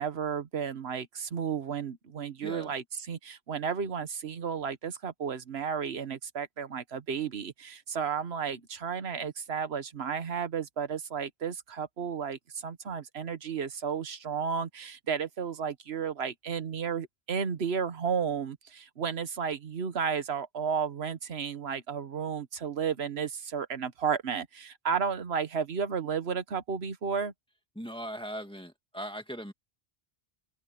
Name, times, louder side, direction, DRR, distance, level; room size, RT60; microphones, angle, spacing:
voice 1, 0.0-27.3, right 6 dB, 80° right, 1.4 m, -33 dB
voice 2, 2.4-2.7 27.8-29.5, equal, 5° left, 1.9 m, -39 dB
open air
omnidirectional pair, 1.1 m